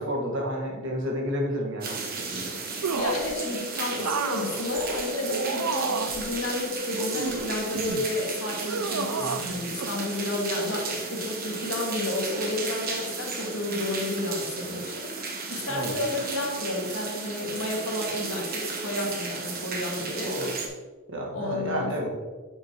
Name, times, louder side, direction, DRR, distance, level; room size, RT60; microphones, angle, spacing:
voice 1, 0.0-2.5 9.2-9.4 15.7-16.0 20.2-20.5 21.1-22.1, equal, 60° right, 0 dB, 1.5 m, -31 dB
sound 1, 1.8-20.7, right 4 dB, 45° right, 1.1 m, -34 dB
sound 2, 2.8-3.3 4.0-6.3 7.0-8.1 8.6-9.5 9.8-9.9, right 5 dB, 85° right, 0.5 m, -31 dB
voice 2, 3.0-15.1 15.5-20.3 21.3-21.9, left 2 dB, 80° left, -2 dB, 2.0 m, -31 dB
7.8 x 6.8 x 3.0 m, 1.4 s
head